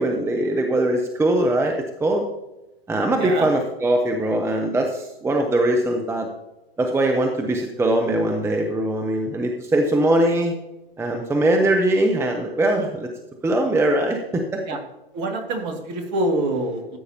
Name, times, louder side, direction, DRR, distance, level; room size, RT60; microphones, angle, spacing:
voice 1, 0.0-2.2 2.9-6.3 6.8-10.6 11.0-13.1 13.4-14.6, right 1 dB, 10° right, 3 dB, 0.9 m, -21 dB
voice 2, 15.1-17.0, right 1 dB, 40° right, 3 dB, 2.2 m, -25 dB
14.0 x 8.3 x 2.8 m, 1.0 s
figure-of-eight pair, 105°, 30 cm